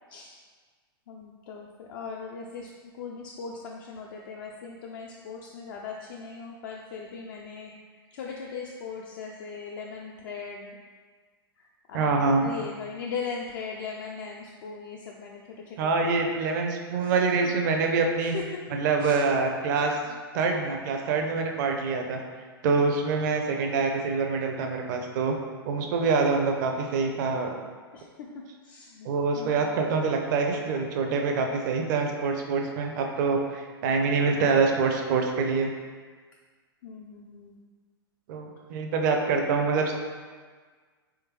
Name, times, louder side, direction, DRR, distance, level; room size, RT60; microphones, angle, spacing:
voice 1, 0.1-0.4 1.1-7.7 8.1-10.8 11.6-16.2 17.0-17.6 18.2-19.4 20.0-20.2 27.9-28.3 28.6-30.0 36.8-37.6, left 5 dB, 55° left, -1 dB, 0.4 m, -39 dB
voice 2, 11.9-12.5 15.8-18.3 18.8-20.0 20.3-22.2 22.6-25.3 25.7-27.6 29.0-35.7 38.3-39.9, right 4 dB, 50° right, 3 dB, 0.6 m, -25 dB
3.5 x 3.2 x 3.0 m, 1.5 s
figure-of-eight pair, 105°, 13 cm